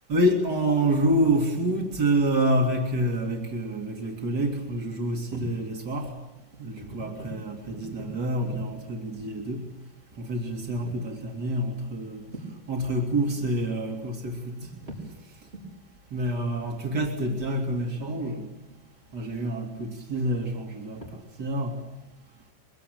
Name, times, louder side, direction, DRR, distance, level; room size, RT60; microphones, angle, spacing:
voice 1, 0.1-6.2 6.6-9.7 10.2-12.2 12.7-14.7 15.2-15.4 16.1-18.5 19.1-21.8, right 1 dB, 35° right, 2 dB, 1.6 m, -27 dB
sound 1, 1.9-2.2 4.0-4.1 4.3-4.5 5.1-5.7 6.0-6.1 6.5-9.7 10.2-10.3 10.7-11.1 12.0-12.6 13.1-13.6 14.3-15.1 15.5-15.7 16.3-19.3 19.7-21.1, right 2 dB, 10° right, 5.1 m, -44 dB
24.5 x 23.5 x 9.1 m, 1.0 s
omnidirectional pair, 5.9 m